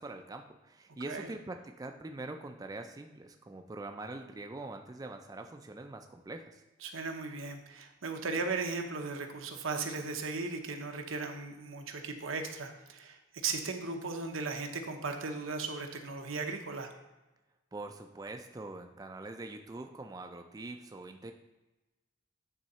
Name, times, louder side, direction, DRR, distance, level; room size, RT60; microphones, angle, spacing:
voice 1, 0.0-6.6 17.7-21.3, right 2 dB, 20° right, 5 dB, 0.3 m, -43 dB
voice 2, 6.8-16.9, right 4 dB, 90° right, 4 dB, 0.8 m, -37 dB
9.1 x 3.7 x 4.2 m, 1.1 s
head